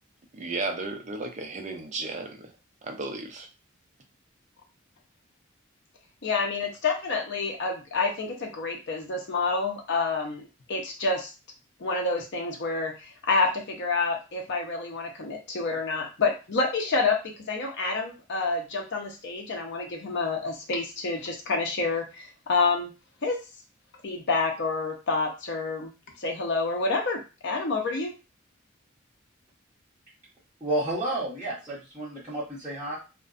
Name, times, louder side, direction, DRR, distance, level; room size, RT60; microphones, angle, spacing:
voice 1, 0.3-2.5 2.8-3.5, right 3 dB, 35° right, 5 dB, 0.5 m, -34 dB
voice 2, 6.2-11.3 11.8-22.9 23.2-23.4 24.0-25.9 26.2-28.1, left 3 dB, 60° left, 2 dB, 0.6 m, -28 dB
voice 3, 30.6-33.0, right 1 dB, 15° right, -11 dB, 0.9 m, -31 dB
2.5 x 2.1 x 2.4 m, 0.30 s
head